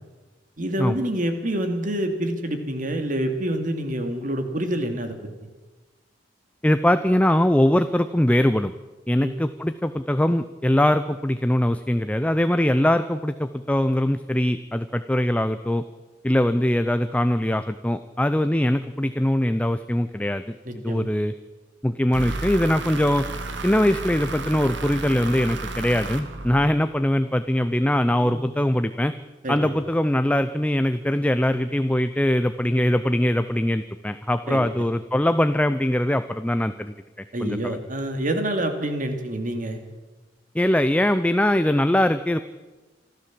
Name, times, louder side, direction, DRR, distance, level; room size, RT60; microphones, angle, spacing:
voice 1, 0.6-5.2 9.2-9.4 20.7-21.1 28.2-28.4 29.4-29.7 34.5-34.7 37.3-39.8, right 1 dB, 50° right, 6 dB, 2.6 m, -27 dB
voice 2, 6.6-8.7 9.1-15.8 16.2-20.5 20.8-21.3 21.8-23.3 23.6-29.1 29.5-36.9 37.4-37.8 40.5-42.4, left 1 dB, 10° left, 10 dB, 0.6 m, -22 dB
sound 1, 22.1-27.1, right 3 dB, 85° right, 2.1 m, -32 dB
26.5 x 13.5 x 7.6 m, 1.2 s
head